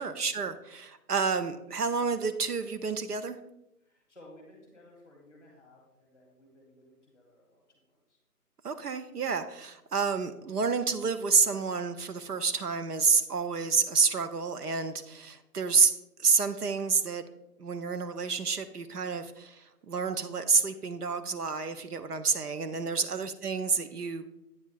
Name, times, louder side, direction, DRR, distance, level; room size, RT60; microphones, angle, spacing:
voice 1, 0.0-3.4 8.6-17.2 17.6-24.3, right 5 dB, 70° right, 10 dB, 0.7 m, -29 dB
voice 2, 3.8-8.2 15.0-15.2 23.1-23.2, left 1 dB, 10° left, 0 dB, 1.4 m, -57 dB
8.9 x 3.4 x 6.3 m, 0.88 s
figure-of-eight pair, 165°, 48 cm